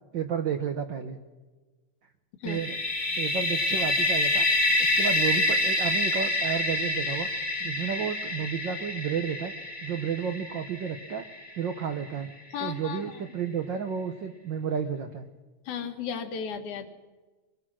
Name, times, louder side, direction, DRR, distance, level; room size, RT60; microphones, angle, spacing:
voice 1, 0.1-1.2 2.4-2.8 3.2-4.5 4.8-7.3 7.6-9.5 9.8-11.3 11.6-12.3 12.6-15.3, right 7 dB, 90° right, 7 dB, 1.0 m, -31 dB
sound 1, 2.5-12.2, left 1 dB, 20° left, 1.5 m, -27 dB
voice 2, 12.5-13.2 15.7-16.9, left 7 dB, 85° left, 6 dB, 2.8 m, -35 dB
24.0 x 19.0 x 6.2 m, 1.3 s
omnidirectional pair, 3.4 m